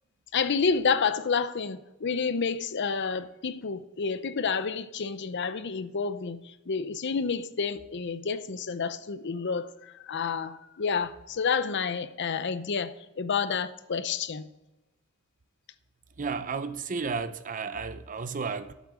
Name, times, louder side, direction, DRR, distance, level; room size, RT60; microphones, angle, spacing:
voice 1, 0.3-14.5, left 5 dB, 55° left, 0.6 m, -29 dB
voice 2, 16.2-18.7, right 5 dB, 40° right, 0.6 m, -33 dB
8.3 x 8.3 x 6.2 m
head